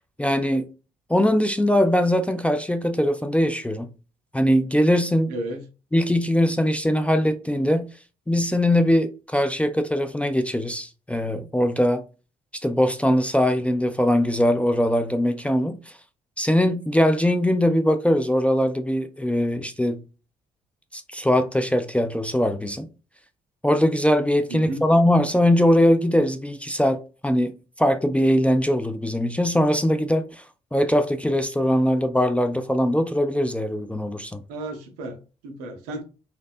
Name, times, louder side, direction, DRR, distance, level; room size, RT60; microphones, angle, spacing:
voice 1, 0.2-0.7 1.1-3.9 4.3-5.3 5.9-7.9 8.3-12.0 12.6-15.8 16.4-20.0 20.9-22.9 23.6-30.4 30.7-34.4, equal, 5° left, 0.3 m, -21 dB
voice 2, 5.3-5.6 24.5-24.8 34.5-36.0, right 2 dB, 70° right, 0.5 m, -33 dB
2.6 x 2.2 x 2.3 m
figure-of-eight pair, 40°, 20 cm